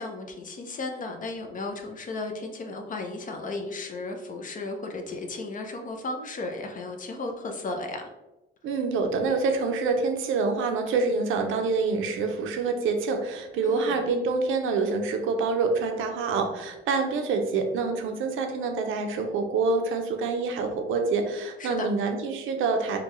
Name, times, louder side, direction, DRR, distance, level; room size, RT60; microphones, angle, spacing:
voice 1, 0.0-8.0 13.6-14.0 21.6-21.9, left 2 dB, 40° left, 4 dB, 0.6 m, -34 dB
voice 2, 8.6-23.0, right 4 dB, 80° right, 5 dB, 0.5 m, -26 dB
3.7 x 2.2 x 3.0 m, 1.0 s
cardioid pair, 90°, 20 cm